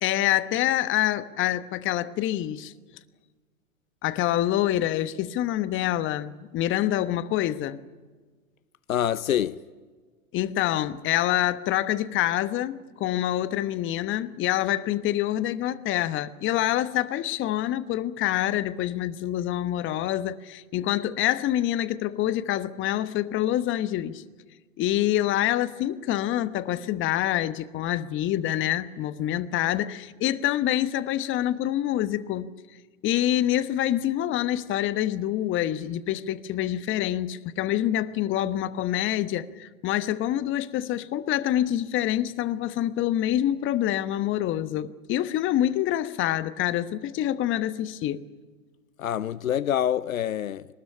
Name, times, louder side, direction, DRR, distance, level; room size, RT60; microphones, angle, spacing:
voice 1, 0.0-2.7 4.0-7.8 10.3-24.2 24.8-32.5 33.0-48.2, left 13 dB, 30° left, 1.1 m, -26 dB
voice 2, 8.9-9.6 49.0-50.7, left 10 dB, 85° left, 0.8 m, -26 dB
22.0 x 20.0 x 9.9 m
hypercardioid pair, 105°, 40 cm